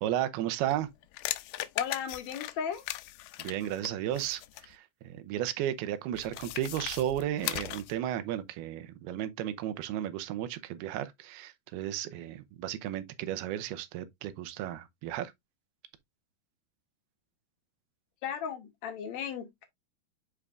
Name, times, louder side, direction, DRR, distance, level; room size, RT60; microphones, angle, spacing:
voice 1, 0.0-0.9 3.4-15.3, right 12 dB, 90° right, 2.7 m, -34 dB
sound 1, 0.7-4.7 6.1-8.0, left 16 dB, 85° left, 2.5 m, -38 dB
voice 2, 1.8-2.8 18.2-19.7, left 8 dB, 65° left, 1.8 m, -35 dB
8.8 x 4.8 x 2.5 m
omnidirectional pair, 4.4 m